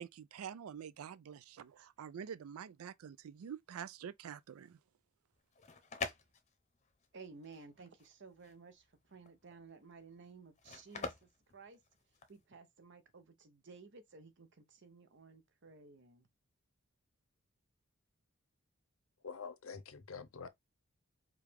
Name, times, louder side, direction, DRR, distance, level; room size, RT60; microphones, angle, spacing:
voice 1, 0.0-4.8, right 8 dB, 90° right, 0.4 m, -47 dB
sound 1, 5.4-12.4, left 4 dB, 35° left, 0.7 m, -46 dB
voice 2, 7.1-11.8 12.3-16.3, right 4 dB, 60° right, 0.8 m, -56 dB
voice 3, 19.2-20.5, left 5 dB, 75° left, 0.7 m, -46 dB
4.8 x 2.4 x 3.4 m
head